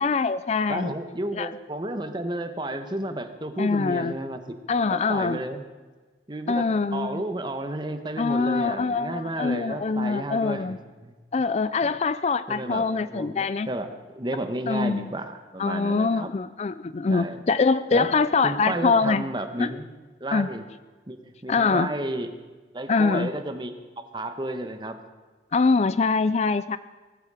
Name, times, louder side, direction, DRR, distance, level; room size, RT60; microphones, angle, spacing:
voice 1, 0.0-0.9 1.3-1.5 3.6-4.2 4.7-5.4 6.5-7.2 8.2-10.8 11.3-13.7 14.7-15.1 15.6-19.2 19.6-19.7 20.3-20.5 21.5-21.9 22.9-23.3 25.5-26.8, left 4 dB, 35° left, 14 dB, 0.4 m, -24 dB
voice 2, 0.7-4.6 4.9-5.6 6.3-6.7 6.9-10.8 11.0-11.1 12.5-13.9 14.1-16.3 17.1-17.4 17.9-18.2 18.4-19.9 20.2-20.6 21.1-22.3 22.7-25.0, right 1 dB, 25° right, 7 dB, 1.2 m, -32 dB
19.0 x 14.5 x 4.9 m, 1.3 s
head